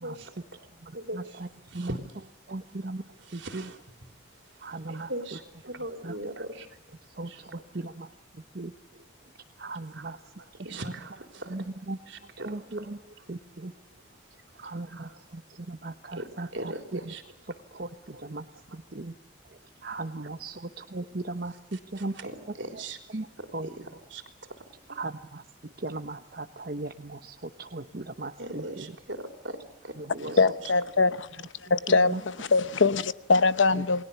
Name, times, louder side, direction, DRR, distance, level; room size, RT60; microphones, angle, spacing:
voice 1, 0.0-0.7 0.9-1.4 1.7-2.3 3.2-4.0 4.9-6.7 7.2-7.9 8.9-9.0 9.9-11.7 12.1-13.2 13.6-13.7 14.9-15.2 16.1-17.6 18.1-18.2 19.8-19.9 21.5-24.6 28.4-29.6 29.8-30.4, right 1 dB, 70° right, 3.6 m, -41 dB
voice 2, 0.8-1.5 1.7-1.9 2.5-3.0 3.3-3.6 4.6-5.1 6.0-6.1 7.2-8.1 8.5-8.7 9.6-10.2 11.5-12.0 12.4-13.0 13.3-13.7 14.6-15.4 15.7-16.7 17.7-18.4 18.7-19.1 19.8-21.5 21.9-22.2 23.1-23.3 23.5-23.7 25.0-25.4 25.8-28.9 30.0-30.1 32.1-32.2, right 2 dB, 50° right, 1.0 m, -37 dB
voice 3, 30.4-31.4 31.7-34.0, left 3 dB, 75° left, 0.9 m, -23 dB
29.0 x 21.0 x 7.0 m
head